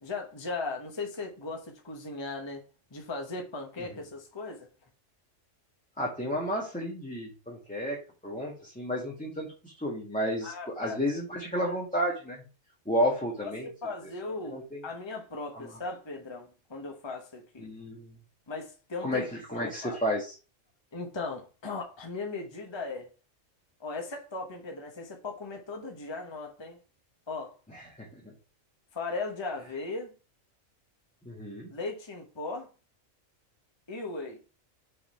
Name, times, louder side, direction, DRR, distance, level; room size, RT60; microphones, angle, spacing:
voice 1, 0.0-2.6 2.9-4.7 10.4-11.0 13.4-13.5 13.8-17.7 18.5-19.3 19.5-20.0 20.9-23.1 23.8-26.8 27.3-27.5 28.9-30.1 31.7-32.7 33.9-34.4, left 3 dB, 20° left, 1.2 m, -37 dB
voice 2, 6.0-12.4 12.8-13.7 14.2-14.9 15.5-15.8 17.6-18.1 19.0-20.3 27.7-28.3 31.2-31.7, equal, 5° left, 1.6 m, -32 dB
5.5 x 4.1 x 5.6 m
omnidirectional pair, 1.3 m